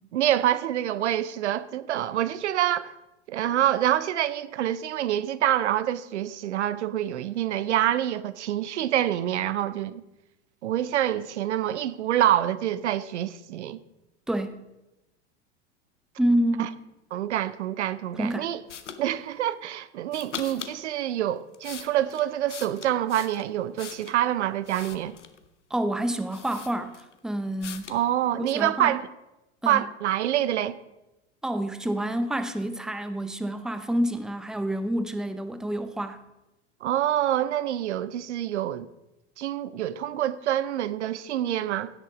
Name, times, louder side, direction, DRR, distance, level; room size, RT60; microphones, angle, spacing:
voice 1, 0.1-2.9 3.3-10.0 10.6-13.8 16.6-16.7 17.1-18.6 19.0-25.2 27.9-29.1 29.7-30.8 36.8-38.9 39.4-41.9, right 12 dB, 75° right, 0.7 m, -26 dB
voice 2, 14.3-14.6 16.2-16.8 18.1-18.5 25.7-27.9 28.4-28.9 29.6-29.9 31.4-36.2, right 1 dB, ahead, 0.7 m, -28 dB
sound 1, 18.7-19.0 20.1-20.8 21.4-24.2 24.6-25.4 26.0-26.1 26.3-27.2 27.6-28.0, left 7 dB, 90° left, 1.0 m, -41 dB
16.5 x 6.6 x 5.0 m
hypercardioid pair, 90°, 35 cm